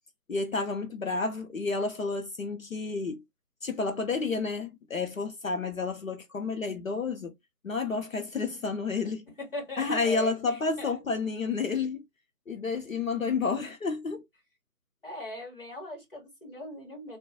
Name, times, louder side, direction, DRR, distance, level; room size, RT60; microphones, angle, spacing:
voice 1, 0.3-3.2 3.6-7.3 7.6-9.2 9.8-12.0 12.5-14.2, left 4 dB, 60° left, 0.5 m, -30 dB
voice 2, 9.3-11.0 15.0-17.2, left 1 dB, 35° left, 1.1 m, -40 dB
2.6 x 2.2 x 2.5 m
figure-of-eight pair, 170°, 47 cm